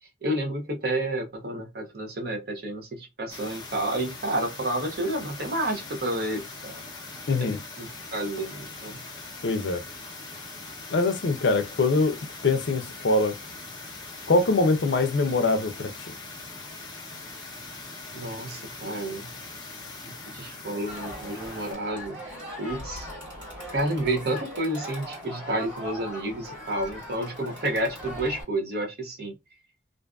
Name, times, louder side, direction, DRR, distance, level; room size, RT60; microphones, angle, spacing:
voice 1, 0.2-6.8 7.4-9.0 18.1-19.3 20.0-22.2 22.6-23.1 23.7-29.3, right 1 dB, 55° right, 0.7 m, -30 dB
sound 1, 3.3-21.7, left 3 dB, 20° left, 0.6 m, -41 dB
voice 2, 7.3-7.6 9.4-9.8 10.9-12.2 12.4-13.3 14.3-16.1, left 3 dB, 70° left, 0.4 m, -23 dB
Crowd, 20.9-28.4, equal, 85° right, 1.4 m, -39 dB
2.5 x 2.4 x 2.3 m
head